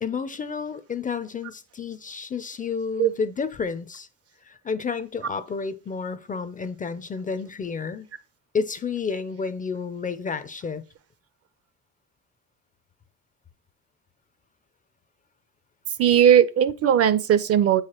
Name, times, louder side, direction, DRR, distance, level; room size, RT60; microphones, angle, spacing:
voice 1, 0.0-4.1 4.4-8.1 8.5-10.8, left 5 dB, 25° left, 0.4 m, -30 dB
voice 2, 16.0-17.8, right 9 dB, 50° right, 0.5 m, -18 dB
7.9 x 4.8 x 2.9 m
cardioid pair, 135°, 32 cm